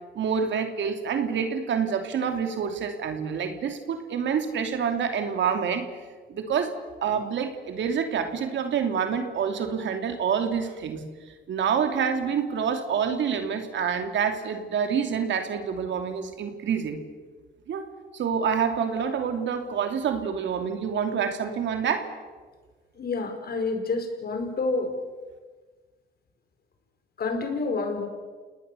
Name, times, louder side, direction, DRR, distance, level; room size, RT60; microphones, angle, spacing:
voice 1, 0.1-5.8 6.3-6.7 7.0-11.0 11.5-17.0 17.7-17.9 18.1-22.1, right 7 dB, 65° right, 6 dB, 2.8 m, -27 dB
voice 2, 23.0-24.9 27.2-28.1, left 3 dB, 50° left, 5 dB, 5.1 m, -28 dB
29.5 x 19.0 x 7.0 m, 1.4 s
cardioid pair, 90°, 20 cm